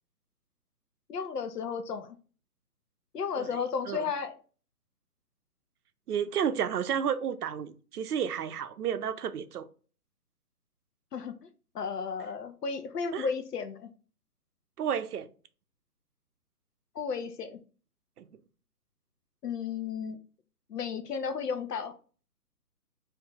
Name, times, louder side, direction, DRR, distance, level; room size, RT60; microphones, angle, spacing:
voice 1, 1.1-2.2 3.1-4.3 11.1-11.3 11.7-13.9 16.9-17.6 19.4-20.2 20.7-21.9, left 6 dB, 85° left, 0.7 m, -33 dB
voice 2, 6.1-9.7 13.1-13.3 14.8-15.3 18.2-18.3, right 8 dB, 75° right, 0.5 m, -31 dB
2.6 x 2.3 x 3.8 m
hypercardioid pair, 150°, 46 cm